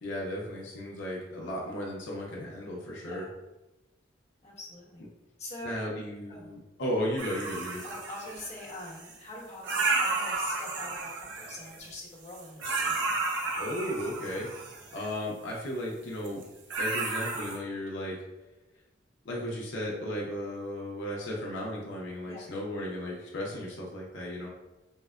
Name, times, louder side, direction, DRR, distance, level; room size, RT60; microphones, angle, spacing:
voice 1, 0.0-3.3 5.6-7.8 12.9-13.1 13.6-14.5 14.9-16.4 16.8-18.2 19.2-24.5, equal, 90° left, -3 dB, 0.7 m, -35 dB
voice 2, 3.0-3.3 4.4-5.1 5.4-6.0 6.3-6.5 7.8-12.9 20.0-20.1 22.2-22.5, left 2 dB, 35° left, -6 dB, 1.2 m, -44 dB
sound 1, 7.2-9.1 9.6-11.9 12.3-15.1 16.2-16.4 16.7-17.6, right 3 dB, 75° right, 0.7 m, -32 dB
5.2 x 2.1 x 2.3 m, 1.0 s
head